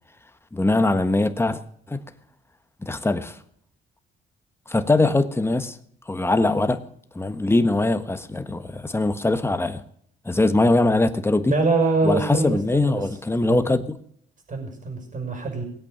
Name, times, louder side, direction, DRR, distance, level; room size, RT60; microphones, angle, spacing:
voice 1, 0.5-1.6 1.9-2.0 2.8-3.4 4.7-5.8 6.1-6.8 7.1-9.8 10.2-11.5 12.0-14.0, left 2 dB, 10° left, 1.4 m, -21 dB
voice 2, 11.5-13.1 13.5-13.6 14.5-15.6, right 3 dB, 40° right, 6.0 m, -24 dB
19.5 x 8.5 x 6.8 m
cardioid pair, 90°, 20 cm